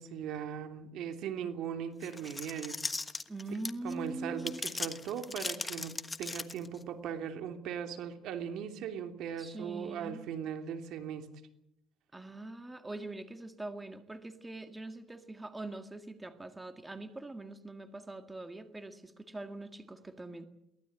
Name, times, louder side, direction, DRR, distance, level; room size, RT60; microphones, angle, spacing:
voice 1, 0.0-2.8 3.8-11.3, right 8 dB, 70° right, 7 dB, 2.9 m, -39 dB
sound 1, 2.0-3.9 4.4-6.8, left 3 dB, 15° left, 1.3 m, -38 dB
voice 2, 3.3-4.6 9.4-10.2 12.1-20.5, right 2 dB, 10° right, 8 dB, 1.9 m, -43 dB
23.0 x 18.5 x 9.0 m, 0.80 s
cardioid pair, 120°, 0 cm